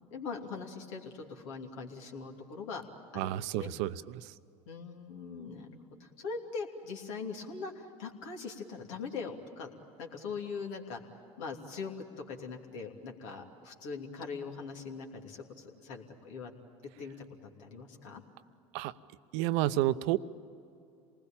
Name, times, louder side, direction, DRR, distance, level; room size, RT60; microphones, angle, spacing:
voice 1, 0.1-2.9 3.1-3.7 4.7-9.7 10.0-11.0 11.4-16.5 17.0-17.2 17.4-18.2, left 5 dB, 80° left, 2 dB, 3.0 m, -41 dB
voice 2, 3.1-4.3 18.7-18.9 19.3-20.2, right 15 dB, 70° right, 13 dB, 0.8 m, -30 dB
27.5 x 20.0 x 8.9 m, 2.6 s
hypercardioid pair, 85°, 16 cm